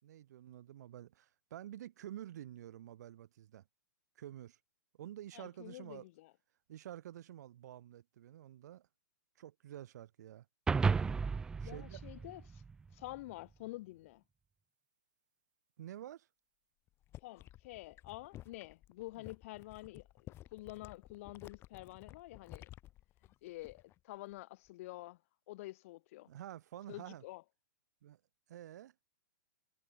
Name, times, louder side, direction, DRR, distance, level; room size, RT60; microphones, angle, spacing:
voice 1, 0.0-3.6 4.2-4.6 5.0-6.1 6.7-8.9 9.4-10.5 11.6-12.0 15.8-16.3 26.3-27.2 28.0-28.2 28.5-28.9, right 12 dB, 60° right, 4.1 m, -49 dB
voice 2, 5.3-6.3 11.6-12.6 12.9-14.2 17.2-22.7 23.4-25.2 25.5-26.3 26.9-27.4, left 18 dB, 45° left, 2.6 m, -48 dB
sound 1, 10.7-13.2, right 5 dB, 5° right, 0.4 m, -34 dB
sound 2, 16.9-24.0 24.3-24.7, left 14 dB, 25° left, 4.0 m, -54 dB
hypercardioid pair, 155°, 10 cm